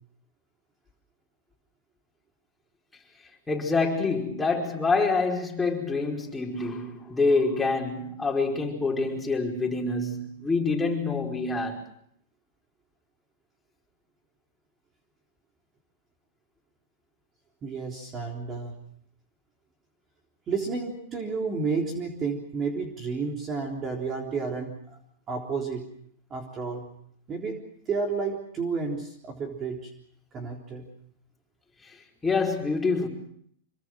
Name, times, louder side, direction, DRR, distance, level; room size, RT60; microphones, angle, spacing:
voice 1, 3.5-11.8 31.8-31.9 32.2-33.1, left 3 dB, 10° left, 5.1 m, -26 dB
voice 2, 17.6-18.8 20.5-24.7 25.3-25.9 26.3-26.9 27.3-27.6 27.9-29.9 30.3-30.9, right 4 dB, 25° right, 3.7 m, -31 dB
26.5 x 23.5 x 6.3 m
supercardioid pair, 145°, 0 cm